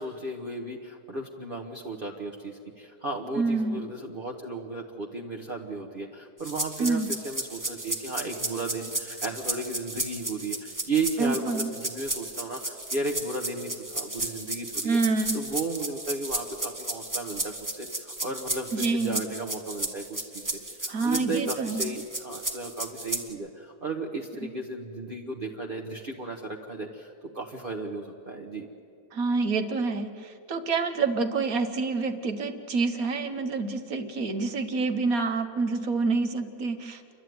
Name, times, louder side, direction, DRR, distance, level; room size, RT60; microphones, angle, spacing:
voice 1, 0.0-15.0 15.3-28.7, right 3 dB, 35° right, 0 dB, 1.4 m, -34 dB
voice 2, 3.4-3.8 6.8-7.1 11.2-11.7 14.8-15.4 18.7-19.2 20.9-21.9 29.1-37.1, right 3 dB, 60° right, 6 dB, 1.7 m, -27 dB
sound 1, 6.4-23.3, right 2 dB, 10° right, 1.3 m, -34 dB
29.5 x 12.0 x 9.5 m, 2.6 s
omnidirectional pair, 1.7 m